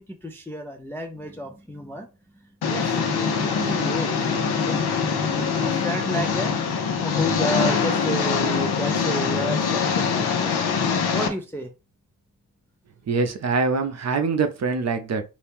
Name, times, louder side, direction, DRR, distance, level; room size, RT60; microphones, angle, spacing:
voice 1, 0.0-4.2 4.7-6.5 7.0-10.5 11.1-11.7, equal, 5° left, 0.3 m, -32 dB
Engine, 2.6-11.3, left 5 dB, 75° left, 0.7 m, -23 dB
voice 2, 13.1-15.2, right 4 dB, 45° right, 0.6 m, -24 dB
2.8 x 2.7 x 3.5 m
wide cardioid pair, 170°, 39 cm